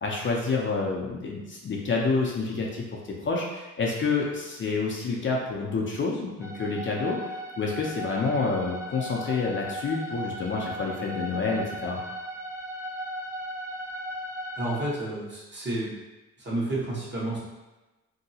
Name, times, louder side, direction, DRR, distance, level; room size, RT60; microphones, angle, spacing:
voice 1, 0.0-7.2 7.6-12.0, left 4 dB, 40° left, -2 dB, 0.6 m, -28 dB
sound 1, 6.4-14.9, equal, 10° right, 0.4 m, -37 dB
voice 2, 14.5-15.9 16.4-17.4, right 1 dB, 35° right, -6 dB, 1.2 m, -30 dB
2.9 x 2.7 x 2.8 m, 1.1 s
cardioid pair, 90°, 30 cm